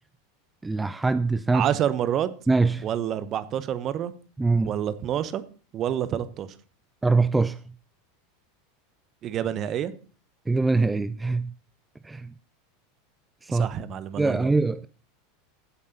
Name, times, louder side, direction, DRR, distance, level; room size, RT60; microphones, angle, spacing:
voice 1, 0.6-1.7 2.5-2.9 4.4-4.7 7.0-7.6 10.5-11.5 12.0-12.3 13.4-13.7 14.2-14.9, right 3 dB, 10° right, 0.4 m, -23 dB
voice 2, 1.5-2.3 2.8-4.1 4.6-5.4 5.7-6.5 9.2-9.9 13.5-14.5, right 10 dB, 40° right, 0.9 m, -28 dB
15.5 x 8.3 x 2.9 m
figure-of-eight pair, 85°, 0 cm